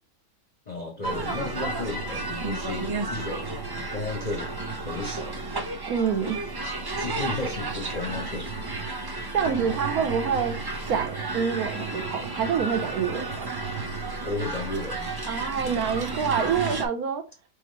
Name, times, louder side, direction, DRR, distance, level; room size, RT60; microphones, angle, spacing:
voice 1, 0.7-3.5 3.9-4.5 4.9-5.4 7.0-8.5 14.2-15.1, left 2 dB, 45° left, 0.6 m, -33 dB
sound 1, 1.0-16.9, right 3 dB, 35° right, 0.3 m, -32 dB
voice 2, 5.9-6.4 9.3-10.6 10.9-13.5 15.3-17.2, right 7 dB, 85° right, 1.3 m, -27 dB
4.7 x 3.5 x 3.1 m
omnidirectional pair, 1.5 m